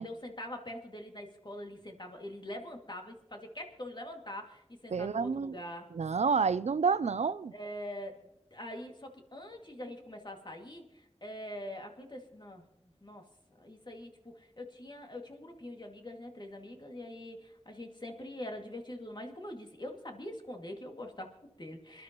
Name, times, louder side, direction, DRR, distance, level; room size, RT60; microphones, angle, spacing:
voice 1, 0.0-5.9 7.5-12.6 13.0-22.0, left 1 dB, 40° left, 2.2 m, -44 dB
voice 2, 4.9-5.6 5.9-7.5, right 5 dB, 85° right, 0.4 m, -29 dB
26.5 x 11.5 x 3.0 m
wide cardioid pair, 50°, 11 cm